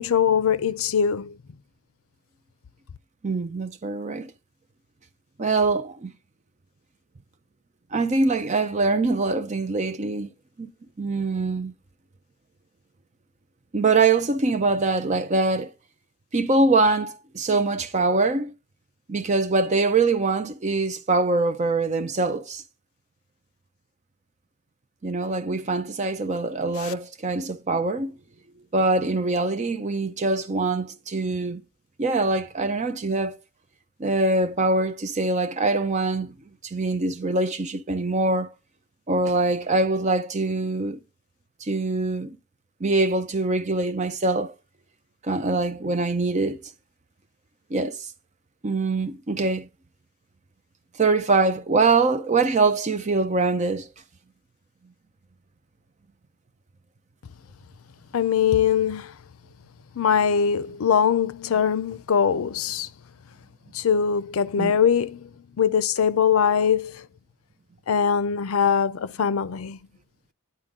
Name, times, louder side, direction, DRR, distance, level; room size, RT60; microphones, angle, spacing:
voice 1, 0.0-1.4 26.8-26.9 58.1-59.2 59.9-62.9 63.7-65.3 65.6-67.1 67.9-69.8, left 7 dB, 80° left, 0.5 m, -22 dB
voice 2, 3.2-4.3 5.4-6.1 7.9-10.3 10.6-10.7 11.0-11.7 13.7-15.7 16.3-18.5 19.1-22.6 25.0-28.1 28.7-31.6 32.0-33.4 34.0-36.3 36.6-38.5 39.1-41.0 41.6-42.4 42.8-44.5 45.2-46.6 47.7-48.0 48.6-49.7 51.0-53.9 64.6-64.8, right 3 dB, 35° right, 0.6 m, -23 dB
10.5 x 4.4 x 3.6 m
head